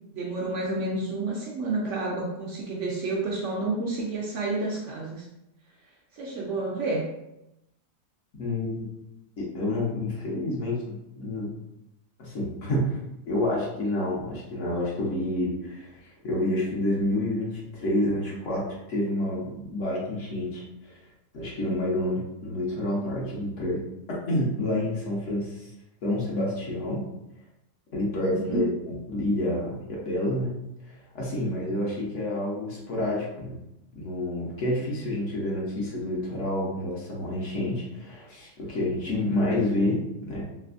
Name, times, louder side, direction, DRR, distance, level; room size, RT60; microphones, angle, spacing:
voice 1, 0.1-5.3 6.1-7.1 28.2-28.7, right 2 dB, 65° right, -3 dB, 0.8 m, -30 dB
voice 2, 8.4-8.9 9.4-11.5 12.2-13.0 13.3-21.0 21.3-23.8 24.3-25.7 26.0-27.0 27.9-30.6 30.9-33.6 33.9-40.4, left 1 dB, 60° left, -5 dB, 1.1 m, -29 dB
3.3 x 2.6 x 2.5 m, 0.86 s
omnidirectional pair, 1.6 m